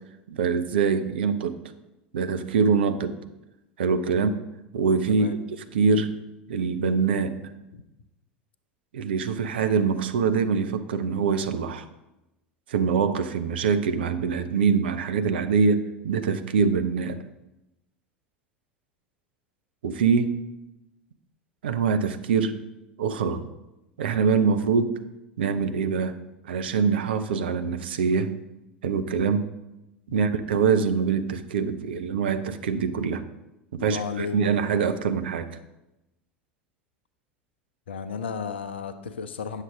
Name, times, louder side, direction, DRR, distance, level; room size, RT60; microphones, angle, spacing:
voice 1, 0.3-1.6 2.1-3.2 3.8-4.3 4.7-5.3 5.7-6.2 6.5-7.4 8.9-11.9 12.7-17.2 19.8-20.3 21.6-22.6 23.0-23.4 24.0-25.0 25.4-26.2 26.4-28.3 28.8-29.5 30.1-33.2 33.7-35.6, right 5 dB, 65° right, 10 dB, 0.6 m, -24 dB
voice 2, 33.8-34.4 37.9-39.6, left 6 dB, 70° left, 9 dB, 0.6 m, -34 dB
9.2 x 6.5 x 3.7 m, 0.94 s
figure-of-eight pair, 75°, 6 cm